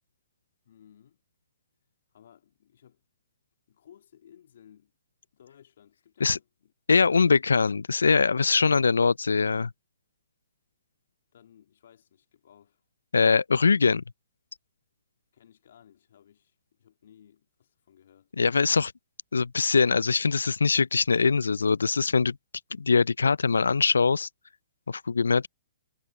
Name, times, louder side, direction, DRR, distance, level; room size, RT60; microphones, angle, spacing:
voice 1, 0.6-1.2 2.1-3.0 3.7-4.9 5.3-6.7 7.0-7.4 11.3-12.8 15.3-18.3, left 9 dB, 65° left, 3.2 m, -57 dB
voice 2, 6.9-9.7 13.1-14.0 18.4-18.9 19.3-22.4 22.7-24.3 24.9-25.5, left 4 dB, 85° left, 0.4 m, -22 dB
hypercardioid pair, 125°, 0 cm